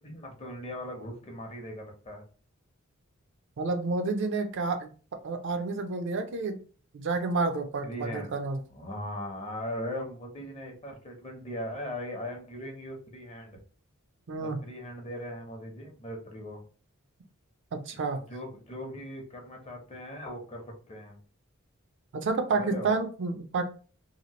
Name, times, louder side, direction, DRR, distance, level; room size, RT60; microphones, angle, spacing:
voice 1, 0.0-2.2 7.8-8.3 8.7-13.6 14.3-16.6 18.1-21.2 22.5-22.9, left 1 dB, 30° left, 2 dB, 0.7 m, -39 dB
voice 2, 3.6-4.9 5.2-6.6 6.9-8.6 14.3-14.6 17.7-18.2 22.1-23.6, right 3 dB, 60° right, 7 dB, 0.4 m, -29 dB
2.8 x 2.4 x 2.8 m, 0.39 s
head